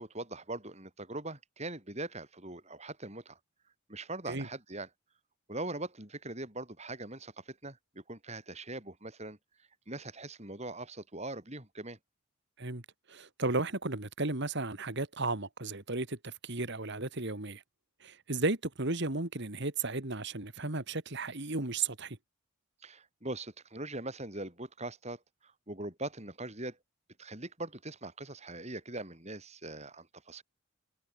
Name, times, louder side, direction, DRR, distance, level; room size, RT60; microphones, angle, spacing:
voice 1, 0.0-3.4 3.9-4.9 5.5-9.4 9.9-12.0 22.8-26.8 27.2-30.4, right 2 dB, 30° right, 5.2 m, -41 dB
voice 2, 13.1-17.6 18.0-22.2, right 3 dB, 50° right, 2.1 m, -34 dB
head